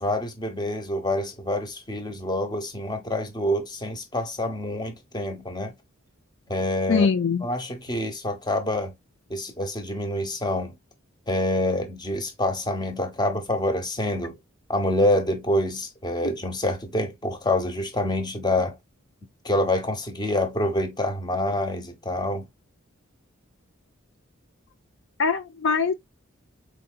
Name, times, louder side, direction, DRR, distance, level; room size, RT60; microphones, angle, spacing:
voice 1, 0.0-5.7 6.5-7.1 7.4-8.9 9.3-10.7 11.3-14.4 14.7-18.8 19.4-22.4, left 1 dB, 20° left, 0.9 m, -26 dB
voice 2, 6.9-7.5 25.2-25.9, left 5 dB, 60° left, 0.5 m, -22 dB
4.7 x 3.9 x 2.2 m
head